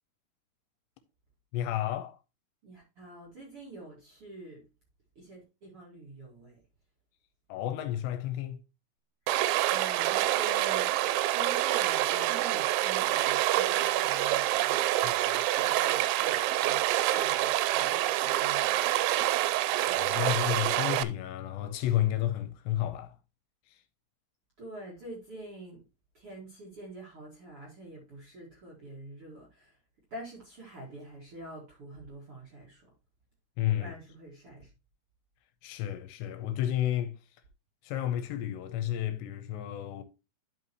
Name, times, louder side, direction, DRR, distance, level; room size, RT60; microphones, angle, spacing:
voice 1, 1.5-2.2 7.5-8.6 15.0-15.1 19.5-23.2 23.7-23.8 33.6-33.9 35.6-37.1 37.8-40.0, left 12 dB, 85° left, 2.7 m, -31 dB
voice 2, 2.6-4.7 5.1-6.6 9.3-14.9 15.6-19.2 24.6-25.8 26.1-29.8 30.1-32.9 33.8-34.7, right 1 dB, 55° right, 1.6 m, -46 dB
Stream, 9.3-21.0, right 15 dB, 85° right, 2.9 m, -27 dB
11.0 x 5.5 x 2.9 m
omnidirectional pair, 5.3 m